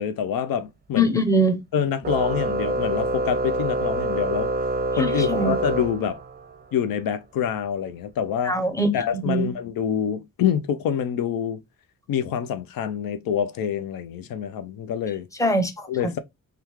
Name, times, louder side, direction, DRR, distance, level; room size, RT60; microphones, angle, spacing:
voice 1, 0.0-1.2 1.7-4.5 5.0-6.2 6.7-8.6 8.9-11.6 12.1-15.3 15.9-16.2, left 8 dB, 85° left, 0.5 m, -26 dB
voice 2, 1.0-1.6 5.0-5.5 8.5-8.9 9.3-9.5 15.4-15.7, equal, 10° left, 0.7 m, -21 dB
Organ, 2.0-6.6, right 2 dB, 30° right, 0.5 m, -26 dB
3.5 x 2.3 x 2.9 m
cardioid pair, 95°, 34 cm